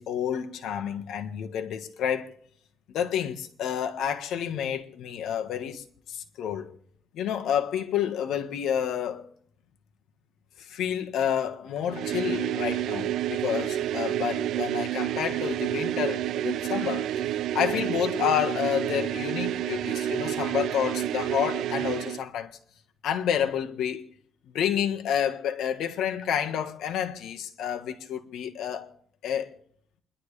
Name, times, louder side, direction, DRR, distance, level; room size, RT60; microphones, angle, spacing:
voice 1, 0.0-2.3 2.9-6.7 7.1-9.3 10.6-17.1 17.5-22.5 23.0-24.1 24.5-28.9 29.2-29.6, left 9 dB, 80° left, 1.4 m, -29 dB
sound 1, 11.9-22.2, right 12 dB, 80° right, 0.5 m, -29 dB
28.5 x 11.5 x 3.3 m
cardioid pair, 90°, 0 cm